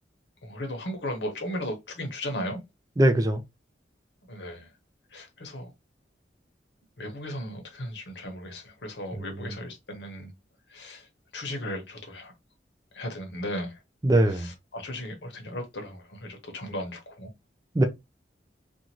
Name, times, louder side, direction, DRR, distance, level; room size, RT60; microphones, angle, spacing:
voice 1, 0.4-2.6 4.2-4.7 5.1-5.7 7.0-10.3 10.7-11.1 11.3-12.3 12.9-13.8 14.3-17.3, left 1 dB, 80° left, 1.0 m, -36 dB
voice 2, 3.0-3.4 9.1-9.6 14.0-14.5 17.7-17.8, right 1 dB, 20° right, 0.4 m, -22 dB
2.6 x 2.4 x 2.9 m
head